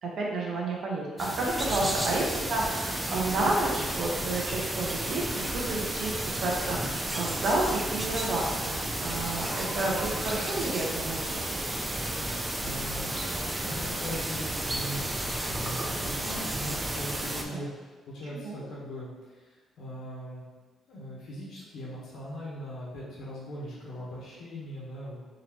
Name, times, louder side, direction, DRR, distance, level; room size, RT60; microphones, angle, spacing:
voice 1, 0.0-11.6 17.5-17.6 18.3-18.6, right 2 dB, 65° right, -2 dB, 0.9 m, -31 dB
sound 1, 1.2-17.4, right 1 dB, 15° right, 0.4 m, -32 dB
voice 2, 12.6-13.2 13.6-20.4 20.9-25.2, equal, 75° left, -6 dB, 1.1 m, -40 dB
3.8 x 3.0 x 3.0 m, 1.4 s
cardioid pair, 90°, 0 cm